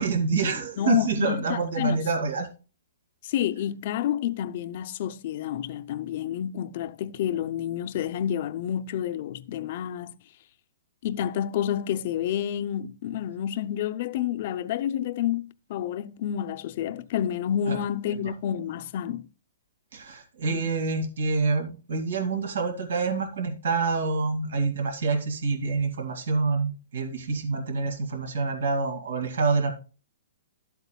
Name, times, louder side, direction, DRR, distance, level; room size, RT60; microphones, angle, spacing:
voice 1, 0.0-2.5 17.7-17.8 18.1-18.2 19.9-29.7, right 4 dB, 80° right, 2.2 m, -27 dB
voice 2, 0.8-2.0 3.2-10.1 11.0-19.3 20.5-20.7, left 10 dB, 45° left, 0.6 m, -29 dB
12.5 x 8.2 x 2.3 m
hypercardioid pair, 155°, 0 cm